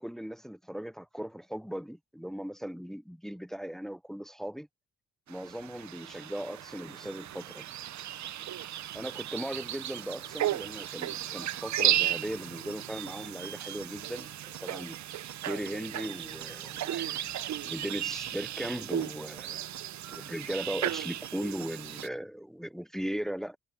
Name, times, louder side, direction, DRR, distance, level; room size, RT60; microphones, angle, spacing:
voice 1, 0.0-4.7 5.3-7.6 8.9-15.0 15.4-17.2 17.6-19.6 20.1-23.6, equal, ahead, 0.4 m, -38 dB
sound 1, 5.3-22.1, right 12 dB, 55° right, 0.5 m, -35 dB
cardioid pair, 105°, 34 cm